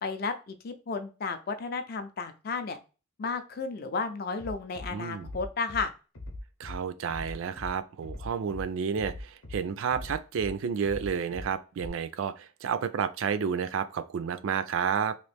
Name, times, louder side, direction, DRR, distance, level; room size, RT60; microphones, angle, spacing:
voice 1, 0.0-2.8 3.2-5.9, left 4 dB, 45° left, 0.4 m, -33 dB
Bass drum, 4.4-4.9 5.2-5.8 6.1-6.8 7.1-7.7 8.0-8.6 9.0-9.6 9.9-10.5 10.8-11.4 11.8-11.9, left 2 dB, 70° left, 0.8 m, -40 dB
voice 2, 4.9-5.3 6.6-15.2, right 7 dB, 65° right, 0.3 m, -31 dB
3.0 x 2.5 x 3.3 m
head